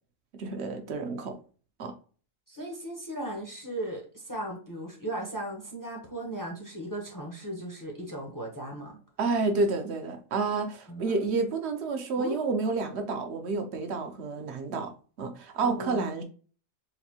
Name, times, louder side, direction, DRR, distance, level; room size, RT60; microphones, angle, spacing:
voice 1, 0.4-1.4 1.8-1.9 9.2-14.9 15.2-16.2, right 3 dB, 60° right, 6 dB, 0.9 m, -29 dB
voice 2, 2.5-9.0 10.9-11.5 12.2-12.4 15.6-16.1, right 1 dB, 20° left, 0 dB, 0.6 m, -37 dB
4.0 x 2.6 x 2.8 m, 0.39 s
omnidirectional pair, 1.4 m